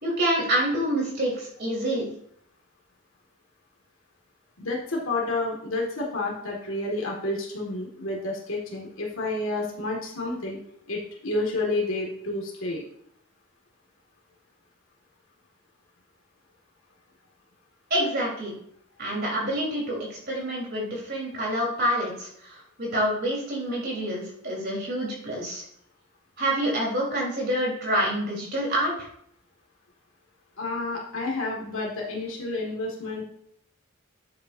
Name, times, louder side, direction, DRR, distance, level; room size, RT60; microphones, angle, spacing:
voice 1, 0.0-2.1 17.9-18.5 19.0-25.6 26.4-28.9, right 1 dB, 45° right, -3 dB, 3.8 m, -27 dB
voice 2, 4.6-10.6 10.9-12.8 30.6-33.2, left 2 dB, 70° left, -2 dB, 1.9 m, -30 dB
10.5 x 7.9 x 2.7 m, 0.69 s
head